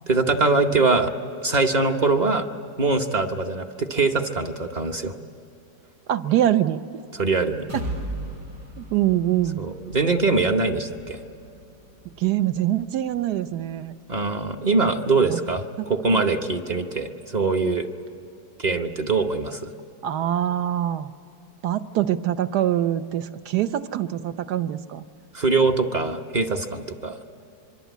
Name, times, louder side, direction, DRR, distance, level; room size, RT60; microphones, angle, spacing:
voice 1, 0.1-1.1 1.4-2.5 2.8-5.1 7.1-7.7 9.6-11.2 14.1-17.9 18.6-19.7 25.3-27.2, right 3 dB, 35° right, 5 dB, 0.8 m, -23 dB
voice 2, 6.1-7.0 7.7-7.8 8.8-9.7 12.2-13.9 15.3-15.4 16.1-16.2 20.0-21.1 21.6-25.0, right 12 dB, 75° right, 11 dB, 1.3 m, -24 dB
sound 1, 7.7-15.5 15.9-16.0 16.4-16.5, right 1 dB, 90° right, 5.4 m, -39 dB
25.0 x 24.0 x 8.3 m, 2.7 s
omnidirectional pair, 1.8 m